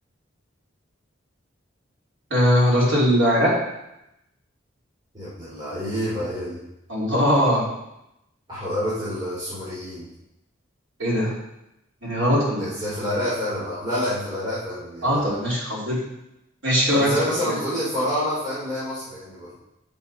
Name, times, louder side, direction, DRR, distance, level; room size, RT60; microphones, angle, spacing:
voice 1, 2.3-3.6 6.9-7.7 11.0-11.3 12.0-12.7 15.0-16.0 16.6-17.1 17.5-17.6, equal, 75° right, -6 dB, 3.2 m, -20 dB
voice 2, 5.1-6.6 8.5-10.1 12.6-15.4 16.9-19.6, equal, 20° right, -10 dB, 3.2 m, -28 dB
7.8 x 7.2 x 4.3 m, 0.87 s
head